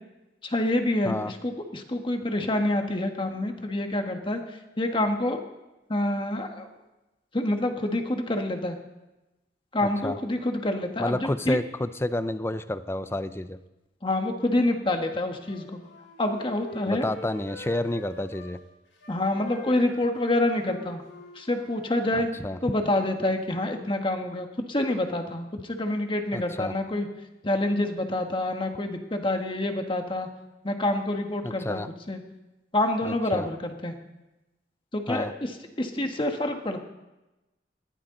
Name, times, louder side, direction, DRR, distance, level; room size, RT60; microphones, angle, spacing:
voice 1, 0.4-4.4 4.8-5.4 5.9-6.7 7.3-8.8 9.7-11.6 14.0-15.8 16.2-17.1 19.1-21.0 21.3-22.3 22.6-27.1 27.4-30.3 30.6-31.8 32.1-32.2 32.7-33.9 34.9-35.5 35.8-36.8, left 1 dB, 30° left, 4 dB, 1.6 m, -27 dB
voice 2, 9.8-10.2 11.0-13.6 16.9-18.6 22.1-22.6 26.3-26.7 31.4-31.9 33.0-33.5 35.1-35.3, left 1 dB, 15° left, 12 dB, 0.6 m, -30 dB
Wind instrument woodwind instrument, 15.4-18.5 18.9-22.4, left 2 dB, 75° left, 3.6 m, -44 dB
20.5 x 14.5 x 3.9 m, 1.0 s
head